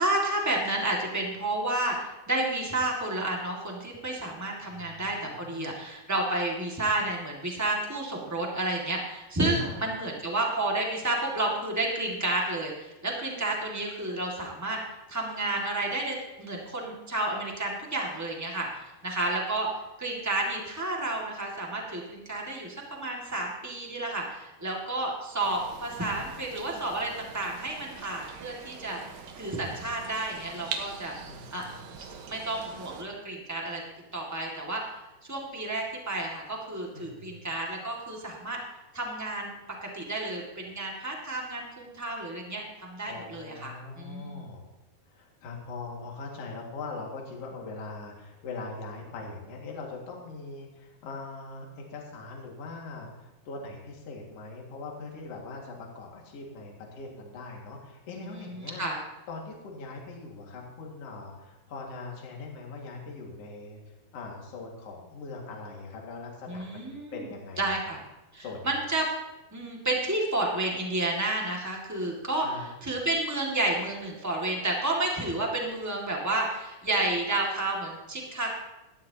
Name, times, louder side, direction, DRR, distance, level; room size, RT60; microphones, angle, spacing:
voice 1, 0.0-14.8 15.1-19.7 20.0-29.0 29.4-31.1 31.5-31.7 32.0-33.8 34.1-34.8 35.3-38.6 38.9-39.5 39.8-44.5 58.2-59.0 66.5-67.3 67.6-68.0 68.3-69.1 69.5-78.6, right 2 dB, 20° right, -1 dB, 0.4 m, -31 dB
voice 2, 4.7-5.7 9.5-9.9 31.3-31.9 36.9-37.4 43.1-44.6 45.1-58.8 59.3-63.8 64.1-67.9 68.4-68.8 72.4-72.7, left 3 dB, 50° left, -1 dB, 2.7 m, -41 dB
sound 1, 25.4-33.0, right 6 dB, 70° right, 2.7 m, -43 dB
18.0 x 12.5 x 2.9 m, 1.0 s
omnidirectional pair, 4.3 m